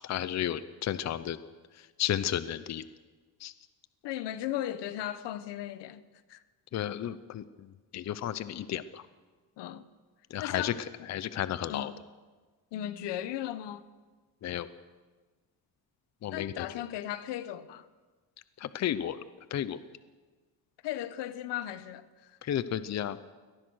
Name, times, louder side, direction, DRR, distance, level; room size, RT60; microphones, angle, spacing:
voice 1, 0.0-1.4 1.7-2.9 3.4-3.5 6.7-9.0 10.3-10.8 11.1-11.9 14.4-14.7 16.2-16.7 18.6-19.2 19.5-19.8 22.4-23.2, left 11 dB, 40° left, 0.7 m, -33 dB
voice 2, 4.0-6.0 6.3-6.4 9.6-9.9 10.4-11.1 11.7-11.9 12.7-13.8 16.3-17.9 20.8-22.4, left 12 dB, 85° left, 1.2 m, -36 dB
23.5 x 19.0 x 6.4 m
cardioid pair, 155°, 41 cm